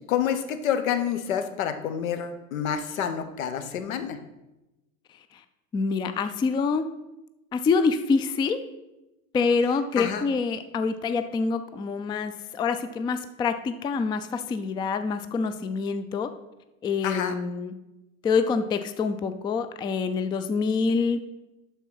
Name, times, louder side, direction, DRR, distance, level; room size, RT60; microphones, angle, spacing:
voice 1, 0.1-4.2 10.0-10.3 17.0-17.3, left 8 dB, 75° left, 9 dB, 1.2 m, -28 dB
voice 2, 5.7-6.8 7.5-8.6 9.3-16.3 16.8-17.7 18.2-21.2, left 5 dB, 10° left, 10 dB, 0.3 m, -26 dB
11.5 x 4.2 x 5.6 m, 0.99 s
hypercardioid pair, 95°, 41 cm